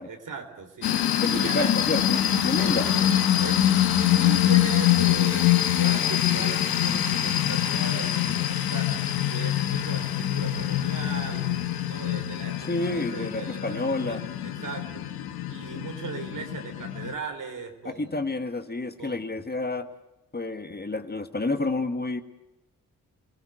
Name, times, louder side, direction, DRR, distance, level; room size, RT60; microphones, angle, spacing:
voice 1, 0.1-1.8 2.4-3.0 3.4-3.6 4.1-9.0 9.3-11.5 11.9-15.1 15.5-18.3 19.0-19.2, right 5 dB, 60° right, 7 dB, 3.7 m, -38 dB
sound 1, 0.8-17.1, left 11 dB, 80° left, 1.5 m, -24 dB
voice 2, 1.2-2.9 12.7-14.2 15.7-15.9 17.8-19.9 20.3-22.2, left 2 dB, 25° left, 8 dB, 1.8 m, -29 dB
27.0 x 17.5 x 7.9 m, 0.96 s
supercardioid pair, 50°, 36 cm